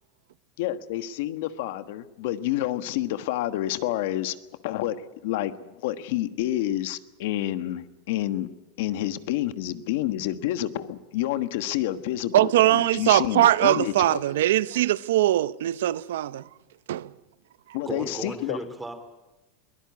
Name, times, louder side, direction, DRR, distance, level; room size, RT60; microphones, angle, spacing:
voice 1, 0.6-4.3 4.6-8.5 8.8-14.2 17.7-18.6, left 13 dB, 60° left, 1.3 m, -29 dB
voice 2, 12.3-16.4 16.9-17.1, right 14 dB, 85° right, 0.8 m, -21 dB
voice 3, 17.9-18.9, right 2 dB, 5° right, 2.8 m, -35 dB
22.5 x 18.5 x 9.7 m
supercardioid pair, 170°, 0 cm